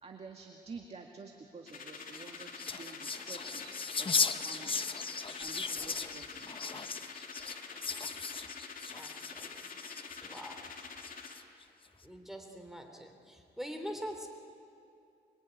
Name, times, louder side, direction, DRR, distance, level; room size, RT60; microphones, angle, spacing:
voice 1, 0.0-4.8 5.4-6.9, right 4 dB, 35° right, 2 dB, 2.1 m, -50 dB
sound 1, 1.7-11.4, left 5 dB, 50° left, 2.6 m, -46 dB
sound 2, 2.0-10.4 11.0-11.6, left 5 dB, 30° left, 1.0 m, -37 dB
voice 2, 8.8-9.7 10.2-10.7 12.0-14.3, equal, ahead, 4 dB, 3.0 m, -44 dB
25.0 x 23.5 x 9.4 m, 2.6 s
cardioid pair, 115°, 18 cm